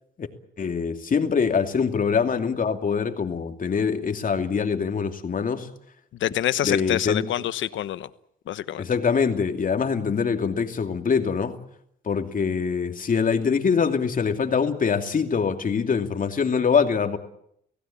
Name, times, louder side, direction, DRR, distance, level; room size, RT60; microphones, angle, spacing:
voice 1, 0.6-5.7 6.6-7.3 8.8-11.6 12.0-17.2, left 6 dB, 45° left, 5 dB, 2.7 m, -24 dB
voice 2, 6.2-8.1 8.5-8.8, left 12 dB, 75° left, 14 dB, 1.1 m, -26 dB
26.5 x 17.0 x 8.8 m, 0.73 s
cardioid pair, 90°, 20 cm